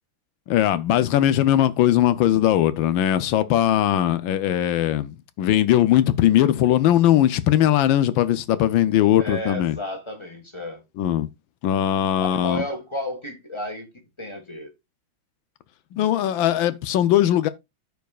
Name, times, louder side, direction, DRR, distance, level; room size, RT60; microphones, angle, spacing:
voice 1, 0.5-9.8 11.0-11.3 11.6-12.6 15.9-17.5, left 12 dB, 80° left, 1.4 m, -20 dB
voice 2, 9.2-10.8 12.2-14.7, left 1 dB, 15° left, 1.5 m, -32 dB
14.0 x 4.7 x 2.4 m
omnidirectional pair, 2.2 m